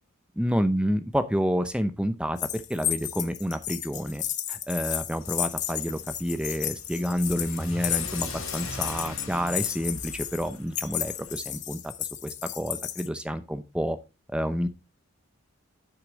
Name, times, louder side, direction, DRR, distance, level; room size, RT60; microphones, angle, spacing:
voice 1, 0.4-4.2 4.5-14.0 14.3-14.7, equal, 5° right, 10 dB, 0.7 m, -29 dB
sound 1, 2.4-13.1, left 12 dB, 35° left, 0.7 m, -33 dB
Car / Accelerating revving vroom, 5.2-11.4, left 2 dB, 70° left, 2.9 m, -41 dB
8.4 x 6.6 x 4.0 m, 0.27 s
head